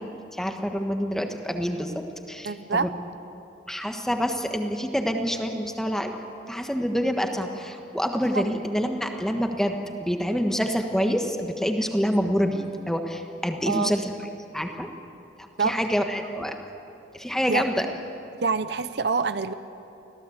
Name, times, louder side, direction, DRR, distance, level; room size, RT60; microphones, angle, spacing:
voice 1, 0.0-2.9 3.7-6.2 6.5-14.1 14.5-14.9 15.6-16.6 17.1-17.9, equal, 5° left, 4 dB, 1.4 m, -27 dB
voice 2, 2.4-2.9 8.3-8.4 13.6-13.9 15.6-15.8 17.5-17.7 18.4-19.5, right 5 dB, 60° right, 12 dB, 0.7 m, -26 dB
25.0 x 16.5 x 8.1 m, 2.8 s
head